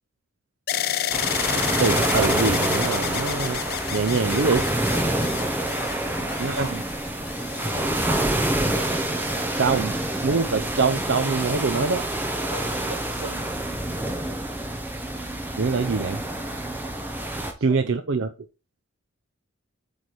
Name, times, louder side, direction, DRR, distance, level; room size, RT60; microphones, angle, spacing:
sound 1, 0.7-8.7 9.4-10.0, left 10 dB, 45° left, 0.4 m, -31 dB
sound 2, 1.1-17.5, right 1 dB, 10° right, 0.8 m, -27 dB
voice 1, 1.5-3.6 3.9-4.7 6.4-6.7 9.6-10.0 10.2-12.1 15.6-16.2 17.6-18.3, right 4 dB, 60° right, 0.5 m, -24 dB
sound 3, 5.9-11.1, equal, 10° left, 1.6 m, -49 dB
voice 2, 5.9-6.8 7.6-8.4 12.5-13.5 17.4-18.0, right 2 dB, 85° right, 1.9 m, -40 dB
8.1 x 3.4 x 4.5 m
head